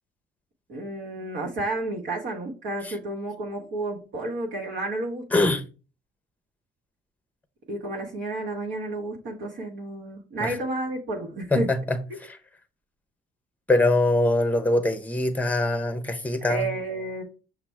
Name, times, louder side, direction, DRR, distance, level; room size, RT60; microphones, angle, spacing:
voice 1, 0.7-5.4 7.7-11.7 12.1-12.2 16.5-17.2, right 2 dB, 70° right, 1.0 m, -31 dB
voice 2, 5.3-5.6 10.4-10.5 11.5-12.4 13.7-16.7, left 2 dB, 10° left, 0.6 m, -23 dB
5.9 x 2.0 x 4.3 m
cardioid pair, 90°, 20 cm